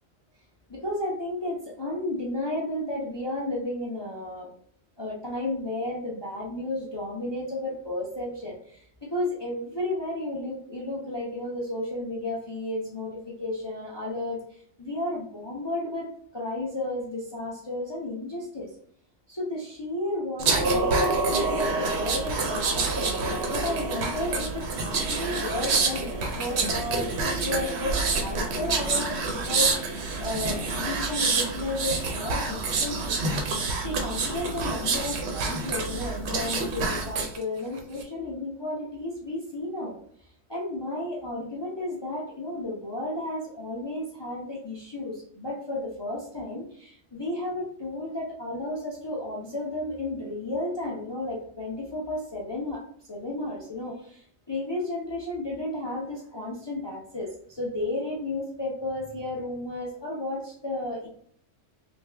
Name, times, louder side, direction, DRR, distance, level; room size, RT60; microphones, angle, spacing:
voice 1, 0.7-4.5 5.0-14.4 14.8-18.7 19.3-23.1 23.5-33.2 33.8-40.0 40.5-52.8 53.1-61.1, left 1 dB, 40° left, -4 dB, 0.3 m, -33 dB
sound 1, 20.4-37.4 37.8-38.0, right 3 dB, 60° right, 0.8 m, -27 dB
3.3 x 2.3 x 3.2 m, 0.62 s
omnidirectional pair, 1.4 m